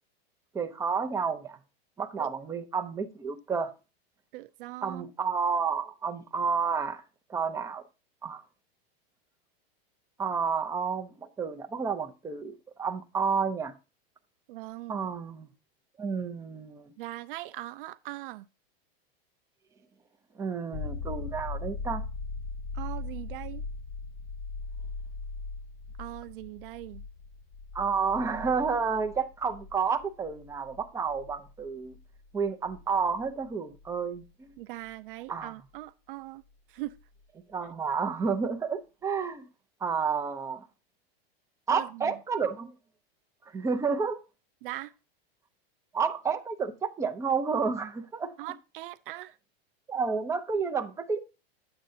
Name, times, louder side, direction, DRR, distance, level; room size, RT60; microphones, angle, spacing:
voice 1, 0.5-1.6 2.0-3.7 4.8-7.0 7.3-7.8 8.2-8.4 10.2-13.7 14.9-15.5 16.0-16.9 20.4-22.0 27.7-31.9 32.3-34.5 35.3-35.5 37.5-39.5 39.8-40.6 41.7-42.7 43.5-44.2 45.9-48.3 49.9-51.2, right 5 dB, 10° right, 0.7 m, -30 dB
voice 2, 4.3-5.1 14.5-15.1 17.0-18.5 22.7-23.6 26.0-27.0 34.6-36.4 36.7-36.9 41.7-42.1 44.6-44.9 48.4-49.4, right 17 dB, 60° right, 0.5 m, -40 dB
sound 1, 20.7-34.2 36.9-37.0, left 3 dB, 30° left, 2.5 m, -40 dB
10.5 x 7.8 x 2.8 m
supercardioid pair, 150°, 31 cm